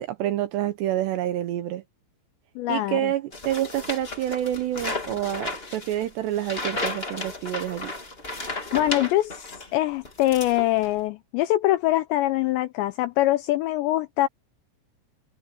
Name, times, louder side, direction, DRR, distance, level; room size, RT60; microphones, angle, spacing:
voice 1, 0.0-1.8 2.7-7.9, right 12 dB, 75° right, 2.7 m, -28 dB
voice 2, 2.6-3.1 8.7-14.3, left 15 dB, 90° left, 2.6 m, -23 dB
sound 1, 3.3-9.7 10.0-11.0, left 2 dB, 20° left, 1.8 m, -34 dB
omnidirectional pair, 5.8 m